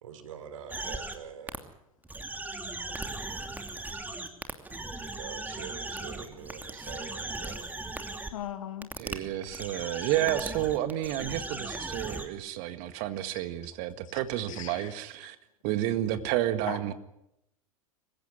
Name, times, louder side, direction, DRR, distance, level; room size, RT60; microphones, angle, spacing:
voice 1, 0.0-1.6 5.0-7.9, right 7 dB, 65° right, 3.7 m, -45 dB
sound 1, 0.7-1.2 1.5-1.6 2.0-8.3 8.8-9.1 9.4-12.3, right 2 dB, 10° right, 2.7 m, -37 dB
voice 2, 8.3-8.9 14.5-14.9 16.7-16.9, left 11 dB, 70° left, 2.2 m, -38 dB
voice 3, 9.0-15.4 15.6-16.9, right 13 dB, 50° right, 1.8 m, -31 dB
25.5 x 16.0 x 9.8 m
figure-of-eight pair, 85°, 18 cm